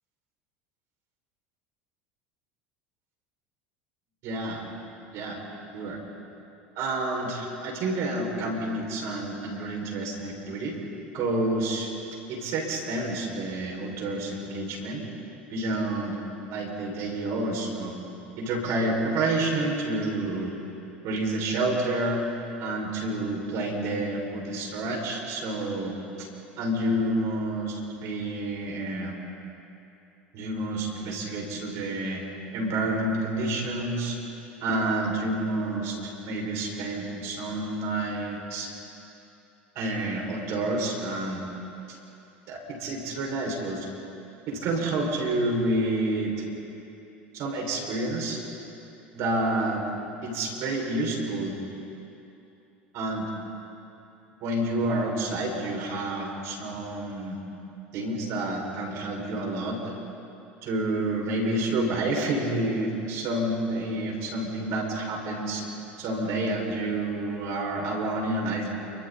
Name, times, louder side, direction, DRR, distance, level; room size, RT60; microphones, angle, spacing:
voice 1, 4.2-4.6 5.1-5.4 5.7-6.0 6.8-10.7 11.1-11.9 12.3-15.0 15.5-16.2 16.5-18.0 18.4-20.5 21.0-22.2 22.6-26.3 26.6-29.1 30.3-32.2 32.5-34.2 34.6-36.0 36.2-38.7 39.7-41.4 42.5-43.9 44.5-46.4 47.3-48.4 49.1-49.8 50.2-51.5 52.9-53.3 54.4-57.4 57.9-59.9 60.6-65.6 66.0-68.7, right 2 dB, 60° right, 0 dB, 6.2 m, -29 dB
28.5 x 25.0 x 4.3 m, 2.8 s
hypercardioid pair, 85°, 6 cm